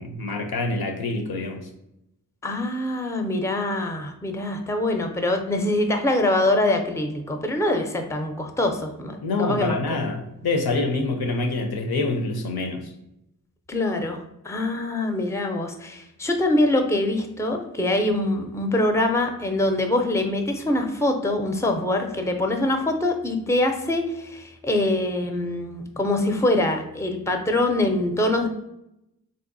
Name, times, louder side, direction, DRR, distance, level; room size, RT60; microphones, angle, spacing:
voice 1, 0.0-1.7 9.2-12.9, left 3 dB, 85° left, 4 dB, 0.5 m, -26 dB
voice 2, 2.4-10.0 13.7-14.2 14.4-28.5, left 1 dB, 10° left, 5 dB, 0.4 m, -24 dB
3.4 x 2.6 x 2.5 m, 0.84 s
cardioid pair, 50°, 37 cm